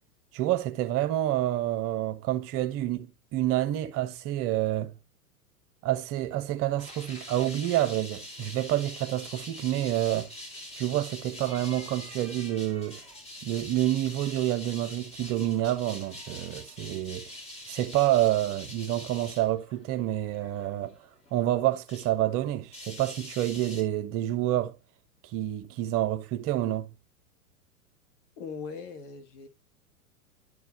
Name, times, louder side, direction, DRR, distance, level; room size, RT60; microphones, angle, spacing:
voice 1, 0.3-4.9 5.8-10.3 10.8-13.0 13.4-17.3 17.7-20.9 21.3-24.8 25.3-26.9, right 13 dB, 30° right, 1.1 m, -28 dB
sound 1, 6.8-22.2 22.4-23.8, left 1 dB, 15° left, 2.7 m, -44 dB
voice 2, 28.4-29.5, left 5 dB, 40° left, 1.7 m, -40 dB
11.5 x 4.7 x 3.1 m
figure-of-eight pair, 100°, 45 cm